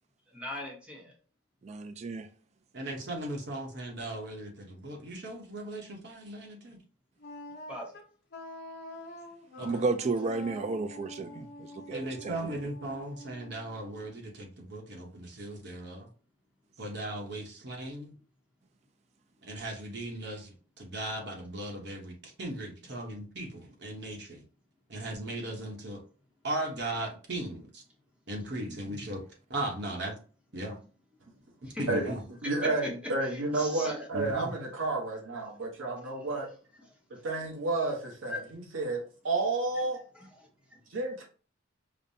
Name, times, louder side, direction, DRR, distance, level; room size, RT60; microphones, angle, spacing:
voice 1, 0.3-1.1 7.7-8.0 31.7-31.8 32.4-32.9 33.2-34.0 38.3-38.4 40.1-40.8, left 1 dB, 5° right, 0.8 m, -40 dB
voice 2, 1.6-2.3 9.6-12.4, right 3 dB, 35° right, 0.3 m, -32 dB
voice 3, 2.7-6.8 9.6-9.8 11.9-16.1 16.8-18.1 19.4-24.4 24.9-26.0 26.4-27.8 28.3-29.2 29.5-30.1 30.5-30.8 31.8-32.2 34.1-34.5, right 1 dB, 60° right, 0.9 m, -37 dB
Wind instrument woodwind instrument, 7.2-14.1, left 1 dB, 55° left, 1.0 m, -46 dB
voice 4, 32.4-36.5 37.2-39.0 39.2-40.0 40.9-41.2, right 3 dB, 90° right, 0.9 m, -31 dB
5.2 x 2.1 x 2.7 m
head